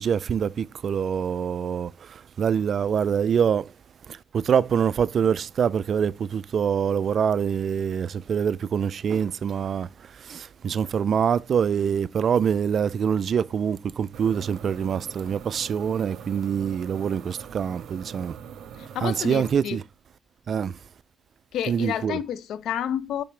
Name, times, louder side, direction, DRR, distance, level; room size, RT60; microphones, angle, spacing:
voice 1, 0.0-3.7 4.1-9.9 10.2-18.3 19.0-19.8 20.5-20.7 21.7-22.2, right 7 dB, 55° right, 0.3 m, -25 dB
sound 1, 14.1-19.5, right 8 dB, 80° right, 0.8 m, -42 dB
voice 2, 18.8-19.8 21.5-23.2, left 9 dB, 75° left, 0.5 m, -30 dB
6.9 x 5.7 x 3.2 m
cardioid pair, 90°, 0 cm